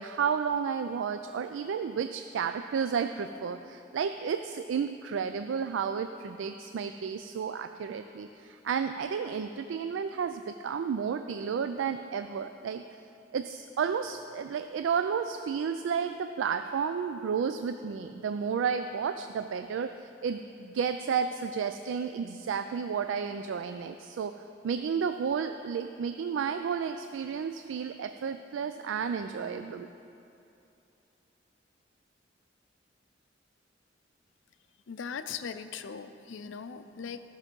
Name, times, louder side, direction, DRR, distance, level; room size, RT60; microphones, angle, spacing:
voice 1, 0.0-12.8 13.3-24.4 24.6-29.9, right 6 dB, 75° right, 9 dB, 0.3 m, -32 dB
voice 2, 34.9-37.2, left 6 dB, 80° left, 10 dB, 0.5 m, -39 dB
14.0 x 6.0 x 5.3 m, 2.7 s
head